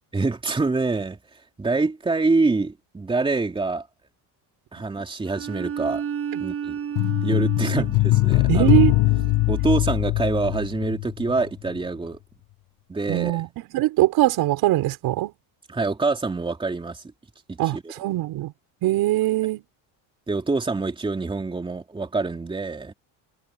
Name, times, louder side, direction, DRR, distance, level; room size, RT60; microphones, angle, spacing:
voice 1, 0.1-3.9 4.7-6.0 6.4-6.8 7.2-8.7 9.5-12.2 12.9-13.4 15.7-17.0 17.5-17.9 20.3-22.9, right 3 dB, 10° right, 3.1 m, -26 dB
Bowed string instrument, 5.3-10.0, right 8 dB, 35° right, 6.4 m, -33 dB
sound 1, 7.0-11.4 11.7-11.8, left 20 dB, 70° left, 6.4 m, -21 dB
voice 2, 8.5-8.9 13.1-13.5 13.7-15.3 17.6-18.5 18.8-19.6, right 16 dB, 60° right, 5.8 m, -21 dB
cardioid pair, 140°, 40 cm